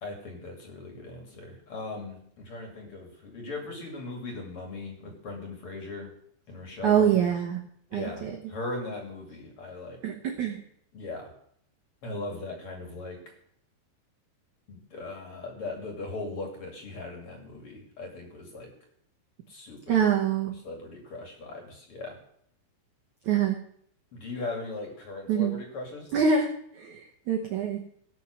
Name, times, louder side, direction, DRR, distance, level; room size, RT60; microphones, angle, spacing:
voice 1, 0.0-6.1 6.5-7.3 7.9-10.0 10.9-11.3 12.0-13.2 14.7-18.7 19.5-20.0 20.5-22.2 24.1-26.1, left 2 dB, 40° left, 1 dB, 2.6 m, -39 dB
voice 2, 6.8-7.6 7.9-8.3 10.0-10.6 19.9-20.5 23.3-23.5 25.3-25.5 26.1-26.5 26.8-26.9 27.3-27.8, right 7 dB, 90° right, 1 dB, 1.6 m, -24 dB
17.0 x 6.4 x 6.1 m, 0.66 s
omnidirectional pair, 5.2 m